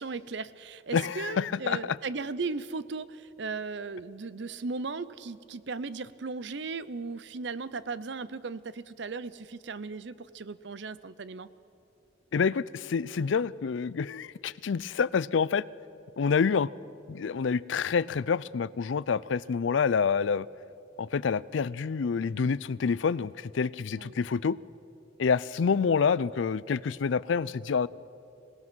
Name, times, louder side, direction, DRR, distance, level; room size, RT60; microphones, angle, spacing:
voice 1, 0.0-11.5 24.0-24.1, right 4 dB, 65° right, 16 dB, 0.6 m, -37 dB
voice 2, 0.9-2.0 12.3-15.6 16.2-16.7 17.1-20.5 21.0-24.6 25.2-27.9, left 5 dB, 75° left, 20 dB, 0.4 m, -27 dB
26.0 x 18.0 x 6.2 m, 2.7 s
head